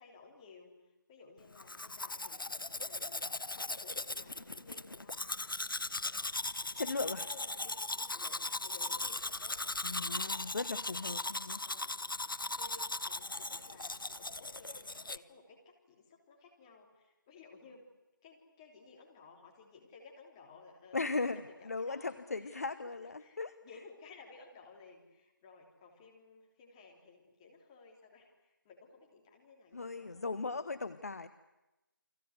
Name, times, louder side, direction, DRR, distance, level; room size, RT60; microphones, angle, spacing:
voice 1, 0.0-6.2 7.0-10.8 11.6-11.9 12.6-17.8 18.2-22.6 23.0-30.8, left 4 dB, 15° left, 0 dB, 3.2 m, -57 dB
Domestic sounds home sounds, 1.6-15.2, left 2 dB, 70° left, 1.0 m, -38 dB
voice 2, 6.7-7.3 9.8-11.6 20.9-23.5 29.7-31.3, left 3 dB, 45° left, 12 dB, 1.0 m, -37 dB
29.5 x 23.5 x 8.1 m, 0.98 s
figure-of-eight pair, 160°, 11 cm